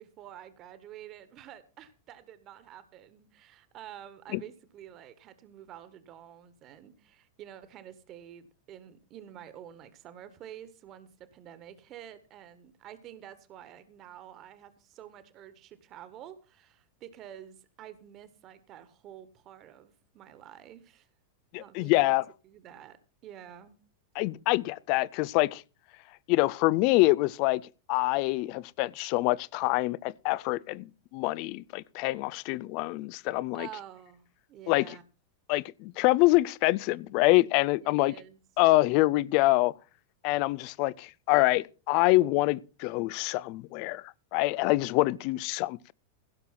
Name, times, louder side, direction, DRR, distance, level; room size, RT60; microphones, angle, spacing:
voice 1, 0.0-21.1 21.6-22.1 22.4-23.0 23.2-23.8 33.5-35.0 37.8-38.4, right 10 dB, 35° right, 1.6 m, -49 dB
voice 2, 21.5-22.2 24.2-25.6 26.3-27.6 27.9-30.9 31.1-33.7 34.7-34.9 35.5-38.1 38.6-39.7 40.2-44.0 44.3-45.9, left 20 dB, 45° left, 0.5 m, -25 dB
16.0 x 6.9 x 5.9 m
figure-of-eight pair, 90°, 0 cm